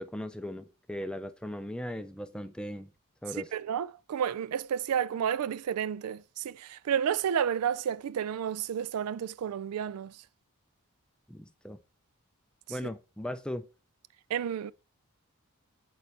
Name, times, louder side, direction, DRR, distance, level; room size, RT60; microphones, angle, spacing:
voice 1, 0.0-2.9 3.2-3.5 11.3-11.8 12.7-13.6, equal, 5° left, 0.4 m, -38 dB
voice 2, 3.5-10.1 14.3-14.7, right 8 dB, 90° right, 0.4 m, -31 dB
8.3 x 4.3 x 3.3 m
head